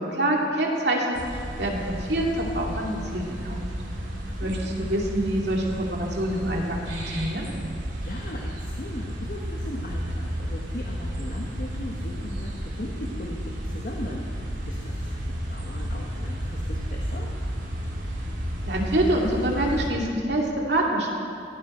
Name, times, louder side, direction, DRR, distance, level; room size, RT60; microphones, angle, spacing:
voice 1, 0.0-3.6 4.4-7.5 18.6-21.1, right 1 dB, 65° right, -1 dB, 2.4 m, -26 dB
sound 1, 1.1-19.9, equal, 90° right, 2.8 m, -32 dB
voice 2, 4.1-4.6 8.0-17.3, left 1 dB, 50° left, -1 dB, 1.3 m, -38 dB
17.5 x 14.5 x 4.4 m, 2.5 s
head